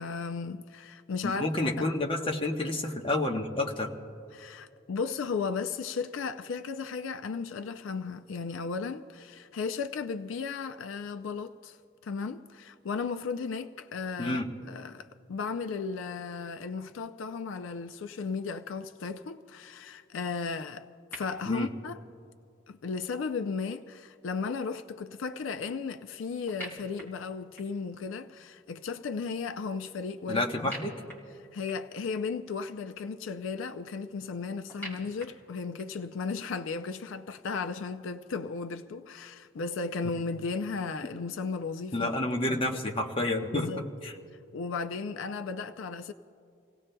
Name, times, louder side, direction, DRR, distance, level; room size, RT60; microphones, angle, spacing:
voice 1, 0.0-1.9 4.3-11.8 12.0-20.9 21.1-22.0 22.7-30.7 31.5-42.1 42.5-42.7 43.5-43.8 44.5-46.1, left 5 dB, 80° left, 0.4 m, -35 dB
voice 2, 1.2-3.9 14.2-14.5 21.5-21.7 30.3-30.9 41.9-43.7 44.0-44.1, left 2 dB, 25° left, 1.0 m, -29 dB
sound 1, 21.1-21.2 26.5-27.9 30.6-32.0 34.7-36.1, equal, 10° left, 2.8 m, -45 dB
30.0 x 17.5 x 2.2 m
head